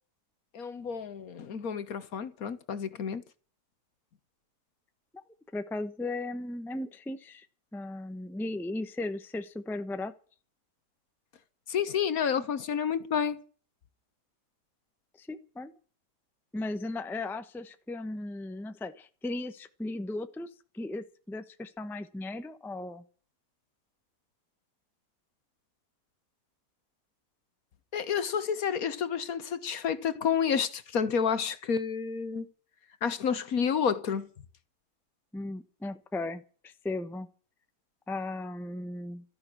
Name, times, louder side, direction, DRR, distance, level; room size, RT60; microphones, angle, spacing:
voice 1, 0.5-3.2 11.7-13.4 27.9-32.5 33.0-34.3, left 7 dB, 60° left, 1.5 m, -30 dB
voice 2, 5.5-7.4 7.7-10.1 15.2-15.7 16.5-20.5 20.7-23.0 35.3-37.3 38.1-39.2, left 2 dB, ahead, 0.8 m, -36 dB
13.5 x 10.5 x 8.4 m
omnidirectional pair, 1.8 m